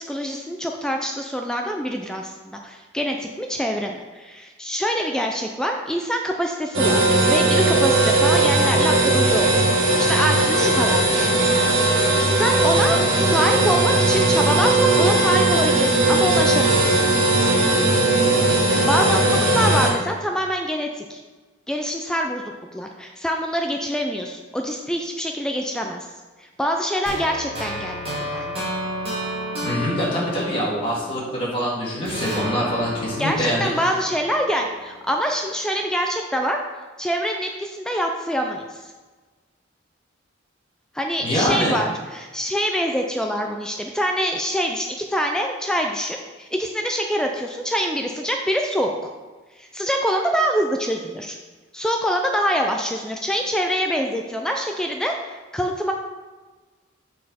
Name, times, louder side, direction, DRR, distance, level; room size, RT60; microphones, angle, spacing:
voice 1, 0.0-11.2 11.7-17.0 18.6-21.2 21.7-22.4 22.7-26.1 26.4-28.6 33.2-36.6 37.0-38.9 40.9-49.1 49.6-51.4 51.7-55.1 55.5-55.9, equal, 5° left, 2 dB, 0.3 m, -25 dB
sound 1, 6.7-19.9, right 2 dB, 85° right, 1.6 m, -18 dB
sound 2, 27.1-31.6 32.1-35.1, equal, 30° right, 1.6 m, -31 dB
voice 2, 29.6-33.9 41.2-41.8, equal, 25° left, -7 dB, 1.9 m, -24 dB
7.2 x 4.3 x 4.2 m, 1.3 s
head